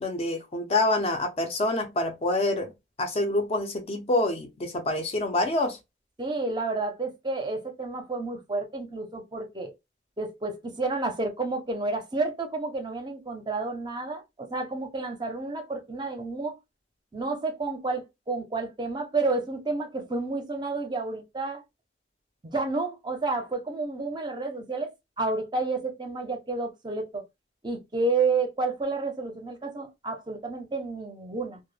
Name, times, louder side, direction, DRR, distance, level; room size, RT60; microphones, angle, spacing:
voice 1, 0.0-2.7 3.0-5.8, left 2 dB, 35° left, 0.4 m, -26 dB
voice 2, 6.2-9.7 10.2-16.6 17.1-21.6 22.4-24.9 25.2-27.2 27.6-31.6, right 3 dB, 25° right, 0.5 m, -30 dB
2.2 x 2.0 x 3.1 m
head